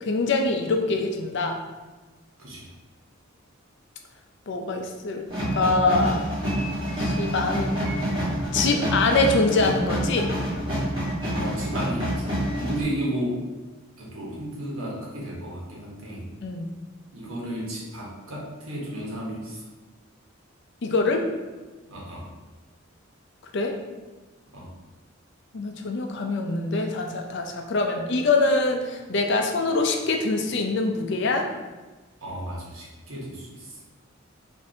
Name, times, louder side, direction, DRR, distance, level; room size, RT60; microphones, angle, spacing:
voice 1, 0.0-1.6 4.5-5.2 5.5-6.3 7.0-7.7 8.5-10.3 16.4-16.7 20.8-21.3 23.5-23.7 25.5-31.5, left 3 dB, 60° left, 4 dB, 0.5 m, -24 dB
sound 1, 5.3-12.8, equal, 25° right, 1.3 m, -27 dB
voice 2, 11.4-13.5 14.0-16.3 17.1-19.7 21.9-22.3 24.5-24.7 32.2-33.8, equal, 85° right, -3 dB, 1.1 m, -33 dB
5.3 x 2.6 x 2.7 m, 1.2 s
head